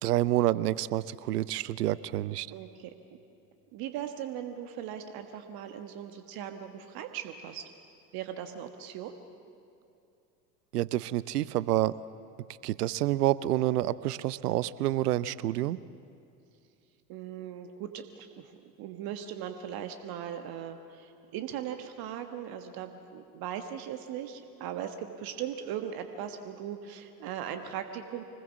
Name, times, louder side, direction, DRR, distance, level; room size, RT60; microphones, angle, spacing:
voice 1, 0.0-2.5 10.7-11.9 12.6-15.8, right 14 dB, 70° right, 19 dB, 0.7 m, -28 dB
voice 2, 2.5-3.0 3.7-7.6 8.1-9.1 17.1-28.2, right 9 dB, 50° right, 7 dB, 1.5 m, -39 dB
26.0 x 20.0 x 7.2 m, 2.6 s
hypercardioid pair, 75°, 48 cm